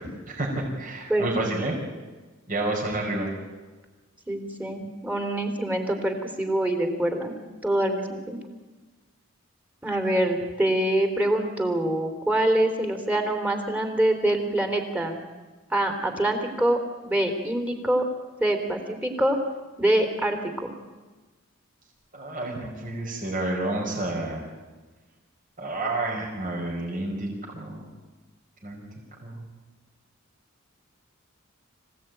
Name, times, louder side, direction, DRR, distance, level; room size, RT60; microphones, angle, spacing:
voice 1, 0.3-1.7 2.5-3.3 22.1-24.4 25.6-27.3 27.5-27.8 28.6-28.8 29.2-29.4, right 2 dB, 40° right, -2 dB, 5.1 m, -29 dB
voice 2, 4.3-7.3 7.6-8.4 9.8-15.2 15.7-16.8 17.0-18.0 18.4-19.4 19.8-20.7, right 1 dB, 10° right, 5 dB, 3.3 m, -25 dB
26.0 x 17.0 x 9.2 m, 1.3 s
head